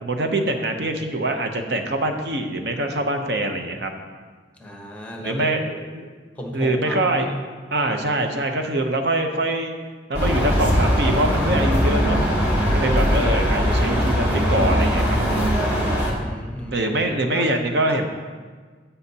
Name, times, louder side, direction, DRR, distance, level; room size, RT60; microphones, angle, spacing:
voice 1, 0.0-3.9 5.2-6.1 6.5-7.3 7.7-9.7 10.1-12.2 12.7-15.2 16.5-18.1, right 1 dB, 60° right, 4 dB, 0.7 m, -24 dB
voice 2, 4.6-5.5 6.4-7.4 16.2-16.9 17.2-17.5 17.9-18.1, equal, 10° left, 0 dB, 1.0 m, -34 dB
sound 1, 10.1-16.1, equal, 15° right, 1.6 m, -20 dB
15.0 x 5.6 x 2.8 m, 1.5 s
head